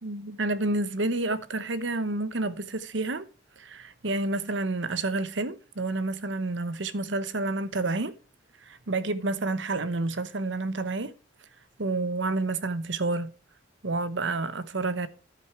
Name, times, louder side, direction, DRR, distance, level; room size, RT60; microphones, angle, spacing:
voice 1, 0.0-3.3 3.6-8.1 8.7-11.1 11.8-13.3 13.8-15.1, right 2 dB, 80° right, 1.0 m, -29 dB
10.5 x 8.5 x 4.5 m
head